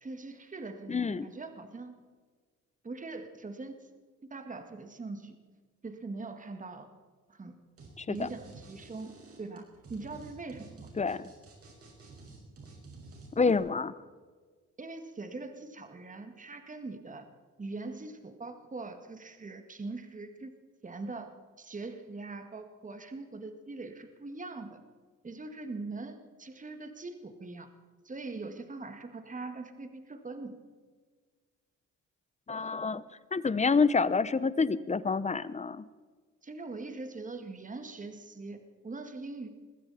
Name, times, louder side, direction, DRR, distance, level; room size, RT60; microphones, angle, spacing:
voice 1, 0.0-2.0 2.8-3.8 4.3-5.4 5.8-6.9 7.3-7.6 8.1-10.9 14.8-17.3 17.6-20.5 20.8-24.8 25.2-27.7 28.0-30.6 36.4-39.5, right 3 dB, 25° right, 7 dB, 2.1 m, -42 dB
voice 2, 0.9-1.3 8.0-8.3 11.0-11.2 13.4-13.9 32.5-33.0 33.3-35.8, left 4 dB, 25° left, 17 dB, 0.7 m, -28 dB
sound 1, 7.8-7.9 8.2-13.6, right 3 dB, 50° right, 5.6 m, -51 dB
21.5 x 15.5 x 4.3 m, 1.5 s
cardioid pair, 90°, 30 cm